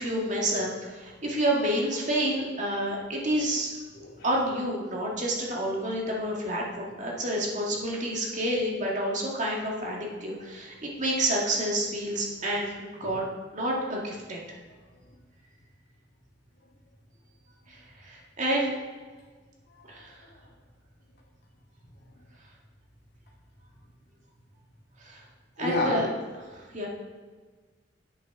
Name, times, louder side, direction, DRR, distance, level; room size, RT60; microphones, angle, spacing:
voice 1, 0.0-3.7 4.2-13.2 13.5-14.4 17.7-18.8 19.9-20.1 25.0-25.2 25.6-26.1 26.7-26.9, right 1 dB, 45° right, -3 dB, 2.2 m, -29 dB
voice 2, 25.6-26.0, left 2 dB, 60° left, -3 dB, 2.5 m, -29 dB
8.6 x 6.5 x 6.0 m, 1.4 s
head